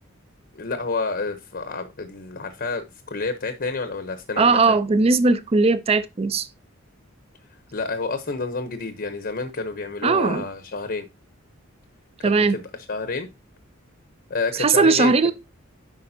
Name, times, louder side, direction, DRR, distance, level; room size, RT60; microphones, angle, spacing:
voice 1, 0.5-4.8 7.7-11.0 12.2-13.3 14.3-15.3, left 3 dB, 50° left, 0.8 m, -29 dB
voice 2, 4.4-6.5 10.0-10.4 12.2-12.6 14.6-15.3, right 4 dB, 30° right, 0.4 m, -18 dB
9.7 x 4.9 x 2.7 m
head